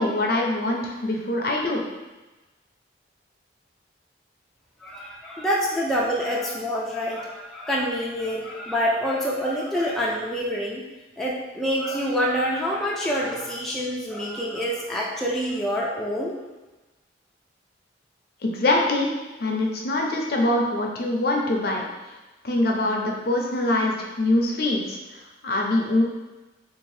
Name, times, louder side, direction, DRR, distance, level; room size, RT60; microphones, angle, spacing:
voice 1, 0.0-1.8 18.4-19.1 19.4-21.8 22.4-26.0, left 1 dB, 55° left, 0 dB, 0.5 m, -24 dB
voice 2, 4.8-10.8 11.2-16.4, equal, ahead, -5 dB, 0.3 m, -26 dB
3.4 x 2.6 x 3.2 m, 1.1 s
head